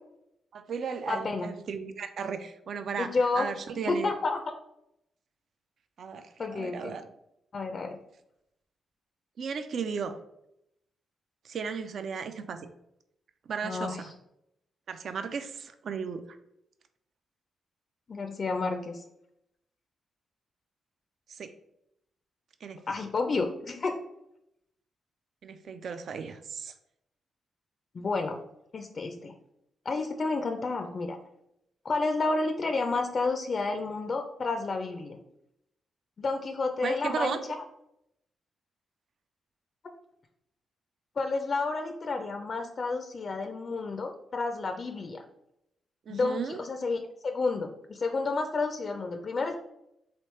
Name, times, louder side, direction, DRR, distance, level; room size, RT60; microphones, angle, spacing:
voice 1, 0.5-4.1 6.0-7.1 9.4-10.2 11.4-12.6 13.5-14.0 14.9-16.2 21.3-21.5 22.6-23.0 25.4-26.7 36.8-37.4 46.1-46.6, right 6 dB, 65° right, 9 dB, 0.3 m, -35 dB
voice 2, 1.1-1.5 3.0-3.5 3.7-4.4 6.4-7.0 7.5-8.0 13.6-14.0 18.1-19.0 22.9-24.0 27.9-28.4 28.7-29.3 29.9-31.2 31.8-35.2 36.2-37.4 41.2-45.2 46.1-49.6, left 3 dB, 50° left, 6 dB, 0.3 m, -30 dB
3.1 x 2.8 x 3.1 m, 0.80 s
hypercardioid pair, 40°, 0 cm